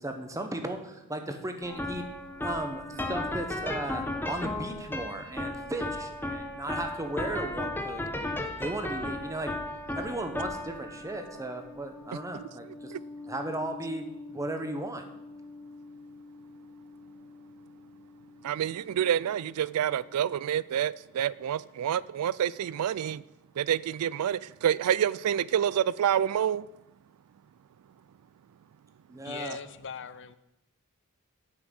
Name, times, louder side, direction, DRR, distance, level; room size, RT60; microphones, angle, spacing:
voice 1, 0.0-2.0 2.4-8.3 8.6-9.5 9.9-12.9 13.3-15.0 29.1-29.6, right 1 dB, 15° right, 1.1 m, -36 dB
sound 1, 1.6-18.8, left 2 dB, 10° left, 0.9 m, -37 dB
voice 2, 18.4-23.2 23.6-26.7, right 9 dB, 90° right, 0.3 m, -28 dB
voice 3, 29.2-30.4, left 6 dB, 55° left, 0.6 m, -40 dB
8.7 x 6.2 x 8.0 m
head